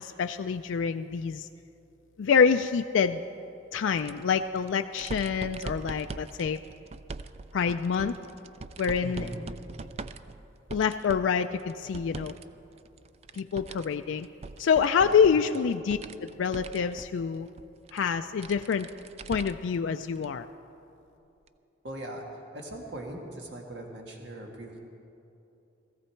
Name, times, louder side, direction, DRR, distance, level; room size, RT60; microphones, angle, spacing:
voice 1, 0.0-1.5 2.2-3.2 3.7-6.6 7.5-8.1 8.8-9.3 10.7-12.3 13.3-14.3 14.6-17.5 17.9-18.9 19.3-20.5, left 6 dB, 75° left, 7 dB, 0.4 m, -26 dB
sound 1, 4.0-12.4 12.8-19.8 20.2-20.3 21.5-21.6, right 3 dB, 30° right, 0.3 m, -43 dB
voice 2, 9.0-9.5 15.0-15.6 21.8-22.2 22.5-24.8, right 1 dB, 60° right, 0 dB, 1.7 m, -40 dB
17.5 x 14.5 x 4.5 m, 2.8 s
head